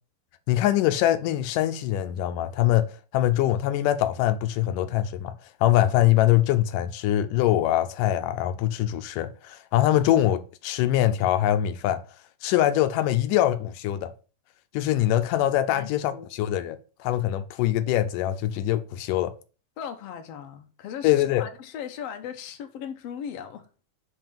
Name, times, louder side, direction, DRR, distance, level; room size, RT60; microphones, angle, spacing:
voice 1, 0.5-5.3 5.6-12.0 12.4-14.1 14.7-19.3 21.0-21.5, left 13 dB, 85° left, 2.2 m, -23 dB
voice 2, 15.7-16.3 19.8-23.7, left 8 dB, 65° left, 1.8 m, -38 dB
6.1 x 5.3 x 6.8 m
omnidirectional pair, 3.7 m